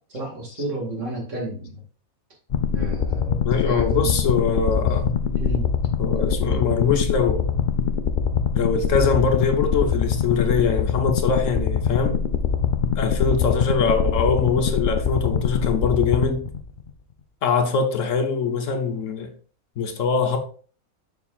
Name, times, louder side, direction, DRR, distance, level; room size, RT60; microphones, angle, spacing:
voice 1, 0.1-1.8 2.7-4.2 5.4-5.7 6.1-6.6, equal, 55° right, 2.3 m, -32 dB
sound 1, 2.5-16.9, left 6 dB, 80° left, 0.4 m, -23 dB
voice 2, 3.4-5.1 6.0-7.6 8.5-12.2 13.0-16.5 17.4-19.3 19.8-20.4, left 5 dB, 65° left, 1.1 m, -23 dB
7.2 x 5.8 x 2.4 m
omnidirectional pair, 1.5 m